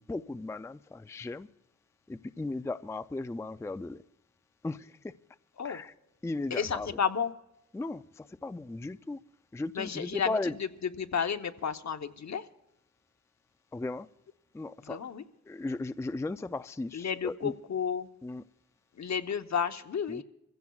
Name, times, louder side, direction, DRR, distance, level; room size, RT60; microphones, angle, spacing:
voice 1, 0.0-1.5 2.1-4.0 4.6-5.1 5.6-5.9 6.2-6.9 7.7-9.2 9.5-10.5 13.7-14.1 14.5-15.0 15.5-17.5 18.2-18.4 20.1-20.2, left 2 dB, 10° left, 0.4 m, -36 dB
voice 2, 6.5-7.3 9.7-12.5 14.8-15.2 16.9-18.1 18.9-20.2, left 7 dB, 60° left, 0.9 m, -32 dB
26.0 x 15.5 x 2.4 m
cardioid pair, 75°, 31 cm